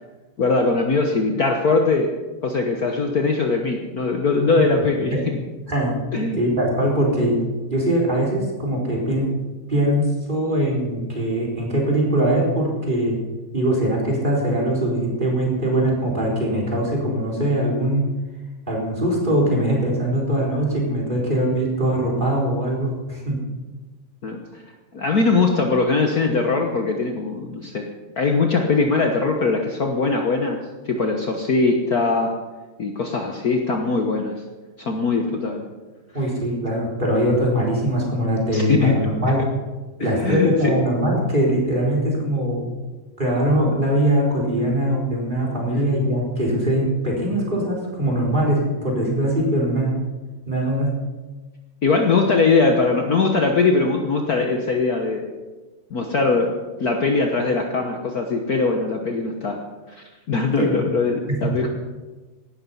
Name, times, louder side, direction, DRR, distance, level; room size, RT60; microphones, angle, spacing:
voice 1, 0.4-2.1 2.4-5.4 6.1-6.4 24.2-24.6 24.9-27.9 28.2-30.6 30.8-32.3 32.8-34.4 34.8-35.7 38.5-39.0 40.0-40.8 49.0-49.2 51.8-55.3 55.9-59.6 59.9-61.7, left 3 dB, 50° left, 3 dB, 1.5 m, -21 dB
voice 2, 6.4-7.4 7.7-9.3 9.7-13.2 13.5-18.0 18.7-23.3 36.1-39.4 40.0-42.6 43.2-49.9 50.5-50.9 60.6-60.8 61.3-61.6, right 1 dB, 20° right, -2 dB, 4.2 m, -21 dB
17.5 x 12.0 x 5.6 m, 1.3 s
omnidirectional pair, 2.3 m